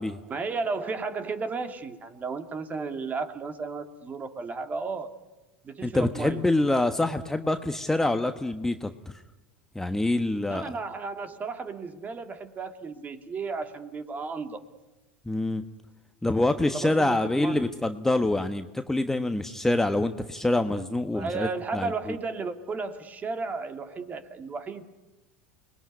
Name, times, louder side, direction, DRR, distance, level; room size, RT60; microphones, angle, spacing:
voice 1, 0.3-5.2 5.6-6.5 10.4-14.6 16.6-17.7 21.1-24.8, right 4 dB, 25° right, 8 dB, 2.5 m, -34 dB
voice 2, 5.8-9.1 9.7-10.7 15.2-15.6 16.2-22.2, left 2 dB, 5° left, 8 dB, 1.3 m, -26 dB
29.0 x 20.5 x 9.7 m, 1.1 s
hypercardioid pair, 80°, 6 cm